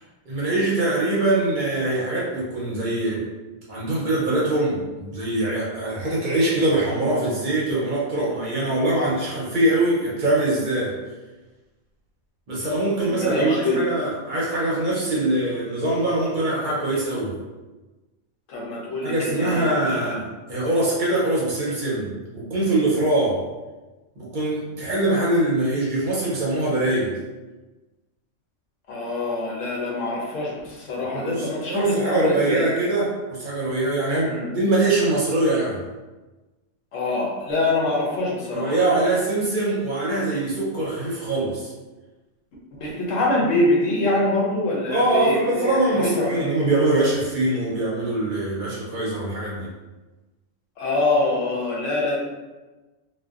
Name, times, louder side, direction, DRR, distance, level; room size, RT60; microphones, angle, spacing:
voice 1, 0.3-3.2 3.7-11.0 12.5-17.3 19.0-22.1 22.3-23.4 24.2-27.1 31.1-35.8 38.5-41.7 44.9-49.7, right 2 dB, 50° right, -5 dB, 0.7 m, -23 dB
voice 2, 13.0-13.8 18.5-20.2 28.9-32.7 34.2-34.5 36.9-38.8 42.8-46.4 50.8-52.2, left 2 dB, 85° left, -3 dB, 1.0 m, -24 dB
2.6 x 2.2 x 2.3 m, 1.2 s
omnidirectional pair, 1.3 m